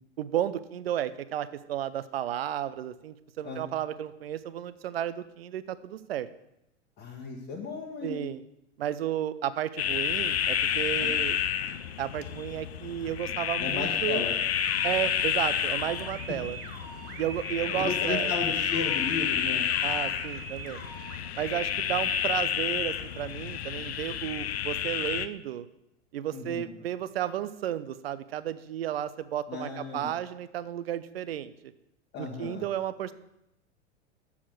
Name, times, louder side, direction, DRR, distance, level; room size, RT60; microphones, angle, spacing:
voice 1, 0.2-6.3 8.0-8.4 8.8-11.4 12.0-14.3 14.8-16.6 17.2-18.3 19.8-20.9 21.4-25.7 26.1-31.7 32.2-33.1, right 11 dB, 55° right, 15 dB, 0.6 m, -33 dB
voice 2, 7.0-8.2 11.0-11.1 13.6-14.4 17.6-19.7 26.3-26.7 29.5-30.1 32.1-32.6, left 4 dB, 30° left, -2 dB, 1.3 m, -35 dB
sound 1, 9.8-25.3, left 9 dB, 60° left, 0.6 m, -30 dB
sound 2, 14.3-21.2, right 4 dB, 30° right, 1.3 m, -43 dB
7.1 x 7.1 x 6.1 m, 0.84 s
figure-of-eight pair, 95°, 35 cm